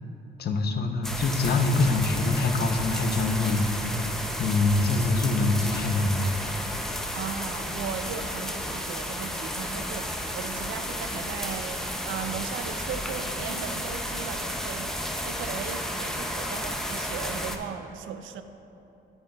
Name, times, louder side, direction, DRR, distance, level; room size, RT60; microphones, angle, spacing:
voice 1, 0.4-3.7 4.4-6.3, left 3 dB, 55° left, 5 dB, 0.6 m, -24 dB
sound 1, 1.0-17.6, equal, ahead, 0.5 m, -32 dB
voice 2, 7.1-14.9 15.2-18.4, right 7 dB, 75° right, 9 dB, 0.4 m, -37 dB
8.9 x 7.7 x 2.3 m, 2.9 s
cardioid pair, 90°, 20 cm